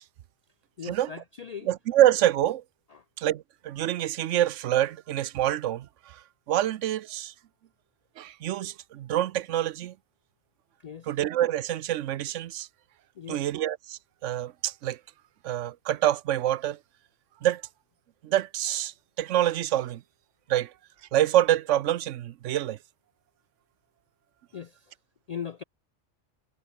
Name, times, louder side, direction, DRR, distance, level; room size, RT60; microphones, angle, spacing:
voice 1, 0.8-1.7 2.9-3.0 10.8-11.1 13.2-13.4 24.5-24.9 25.3-25.6, left 8 dB, 70° left, 0.3 m, -39 dB
voice 2, 1.7-2.6 3.2-7.3 8.2-9.9 11.1-12.7 13.3-15.0 15.4-16.8 17.4-17.6 18.2-20.0 20.5-20.7 21.1-22.8, right 12 dB, 90° right, 1.0 m, -26 dB
omnidirectional pair, 1.2 m